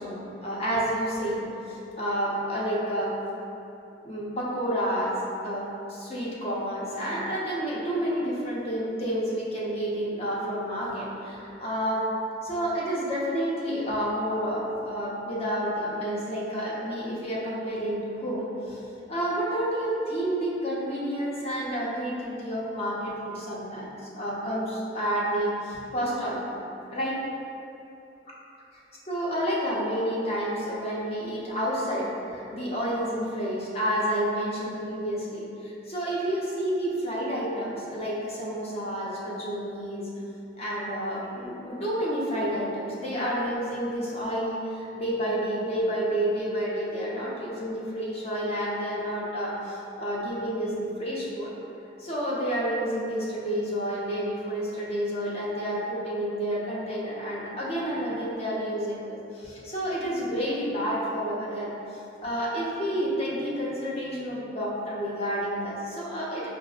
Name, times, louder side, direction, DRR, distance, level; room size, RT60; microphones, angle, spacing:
voice 1, 0.0-3.1 4.0-5.1 5.4-12.1 12.4-18.8 19.1-26.6 26.9-27.2 29.1-40.1 40.6-51.5 52.0-61.7 62.2-66.5, equal, 35° left, -6 dB, 0.6 m, -30 dB
4.9 x 2.0 x 2.3 m, 2.8 s
head